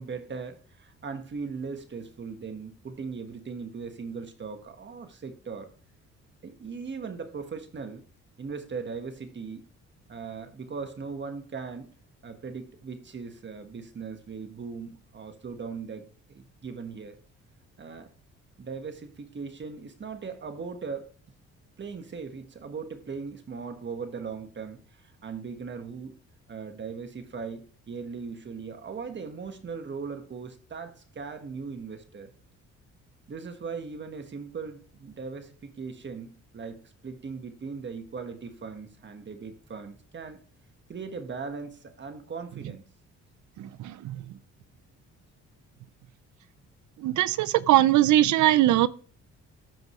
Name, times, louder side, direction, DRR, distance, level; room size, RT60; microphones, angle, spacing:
voice 1, 0.0-5.7 6.4-8.0 8.4-9.7 10.1-11.9 12.2-17.2 17.8-18.1 18.6-21.1 21.8-26.2 26.5-32.3 33.3-40.4 40.9-42.8, right 5 dB, 40° right, 1.5 m, -39 dB
voice 2, 43.6-44.2 47.0-48.9, right 14 dB, 75° right, 0.6 m, -21 dB
13.5 x 5.3 x 3.1 m
cardioid pair, 90°, 30 cm